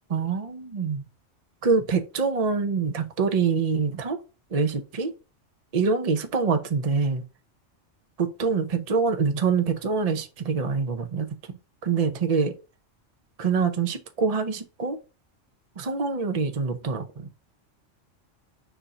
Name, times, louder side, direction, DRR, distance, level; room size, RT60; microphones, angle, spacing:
voice 1, 0.1-1.0 1.6-4.2 4.5-5.1 5.7-7.2 8.2-12.6 13.4-15.0 15.8-17.3, right 5 dB, 35° right, 0.8 m, -25 dB
7.1 x 2.8 x 5.0 m
omnidirectional pair, 1.2 m